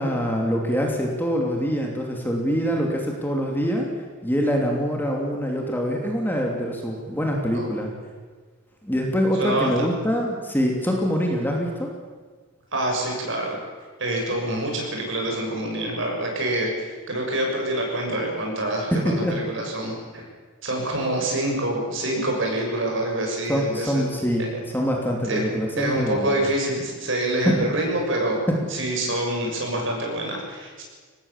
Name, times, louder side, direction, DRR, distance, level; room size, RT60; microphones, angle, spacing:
voice 1, 0.0-3.9 4.2-7.9 8.8-11.9 18.9-19.4 23.5-26.3 27.4-27.5, equal, 10° left, 0 dB, 2.8 m, -24 dB
voice 2, 9.4-9.7 12.7-13.6 14.0-20.2 20.6-24.0 25.3-25.5 25.8-28.4 28.7-30.8, right 1 dB, 60° right, 0 dB, 7.1 m, -26 dB
24.0 x 19.0 x 7.4 m, 1.5 s
head